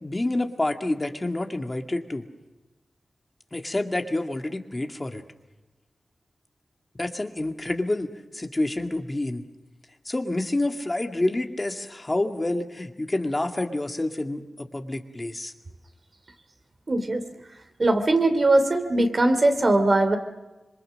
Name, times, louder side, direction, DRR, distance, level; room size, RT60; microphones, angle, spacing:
voice 1, 0.0-2.2 3.5-5.2 7.0-9.4 10.0-15.5, left 2 dB, 30° left, 5 dB, 2.1 m, -28 dB
voice 2, 16.9-17.2 17.8-20.2, right 2 dB, 50° right, 7 dB, 2.9 m, -20 dB
26.5 x 22.5 x 6.5 m, 1.1 s
cardioid pair, 45°, 0 cm